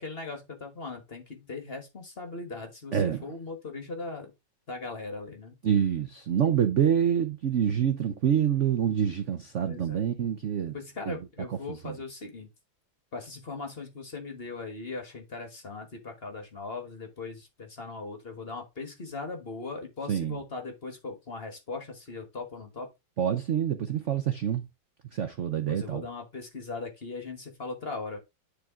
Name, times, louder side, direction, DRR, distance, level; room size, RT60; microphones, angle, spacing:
voice 1, 0.0-4.3 4.7-5.5 9.6-10.0 10.7-12.5 13.1-22.9 25.7-28.2, left 3 dB, 35° left, 1.3 m, -39 dB
voice 2, 5.6-10.7 11.1-11.2 11.7-11.9 20.1-20.4 23.2-24.6 25.1-26.0, right 8 dB, 65° right, 0.7 m, -26 dB
9.9 x 3.7 x 3.6 m
omnidirectional pair, 2.2 m